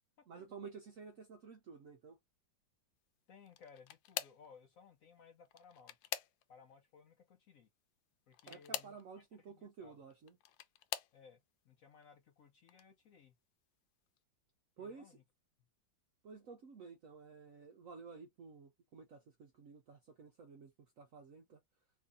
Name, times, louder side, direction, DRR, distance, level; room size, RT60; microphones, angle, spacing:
voice 1, 0.3-2.2 8.5-10.4 14.8-15.2 16.2-20.7 21.0-21.6, right 5 dB, 70° right, 0.8 m, -53 dB
voice 2, 3.3-6.1 6.5-7.7 8.3-10.0 11.1-11.4 11.6-13.3 14.8-15.2, left 6 dB, 65° left, 0.8 m, -61 dB
sound 1, 3.5-4.5 5.4-6.7 8.3-9.0 10.1-11.2 11.9-12.3 12.7-12.8 14.2-14.3, left 12 dB, 90° left, 1.3 m, -44 dB
3.1 x 2.6 x 3.5 m
omnidirectional pair, 2.0 m